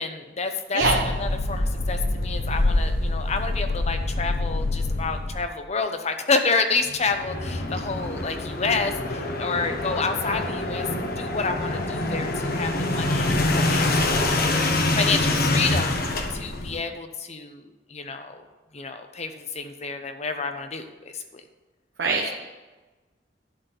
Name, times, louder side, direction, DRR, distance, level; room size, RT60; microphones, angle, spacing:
voice 1, 0.0-14.6 15.0-18.4 18.7-21.4, left 4 dB, 40° left, 7 dB, 0.9 m, -29 dB
sound 1, 0.8-5.4 6.9-16.8, left 2 dB, 55° left, 1.1 m, -25 dB
voice 2, 22.0-22.4, right 3 dB, 90° right, 0 dB, 1.1 m, -23 dB
11.5 x 4.3 x 8.2 m, 1.2 s
head